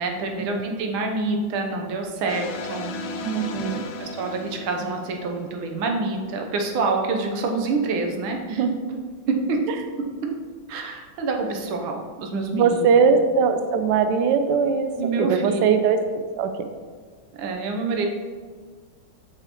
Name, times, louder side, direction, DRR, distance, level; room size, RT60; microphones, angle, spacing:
voice 1, 0.0-2.9 4.0-8.6 9.3-9.6 10.7-13.0 15.0-15.6 17.3-18.1, right 3 dB, 90° right, 2 dB, 1.7 m, -27 dB
sound 1, 2.3-5.7, left 2 dB, 80° left, 1.4 m, -35 dB
voice 2, 3.2-3.8 8.5-8.7 11.2-11.3 12.5-16.0 16.4-16.7, right 6 dB, 75° right, 7 dB, 1.1 m, -21 dB
7.8 x 5.6 x 3.0 m, 1.5 s
omnidirectional pair, 2.2 m